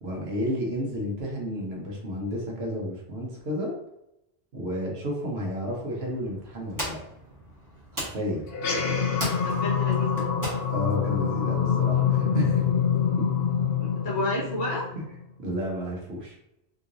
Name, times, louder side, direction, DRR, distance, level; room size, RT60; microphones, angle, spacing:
voice 1, 0.0-3.7 4.5-7.0 7.9-8.4 10.7-12.7 15.4-16.3, equal, 70° right, -2 dB, 1.2 m, -31 dB
sound 1, 5.9-11.1, equal, 20° right, 1.2 m, -38 dB
sound 2, 8.5-15.2, left 7 dB, 65° left, 0.9 m, -25 dB
voice 2, 9.3-10.6 13.8-14.9, left 1 dB, 50° left, -7 dB, 1.3 m, -31 dB
3.7 x 2.9 x 2.6 m, 0.83 s
omnidirectional pair, 1.1 m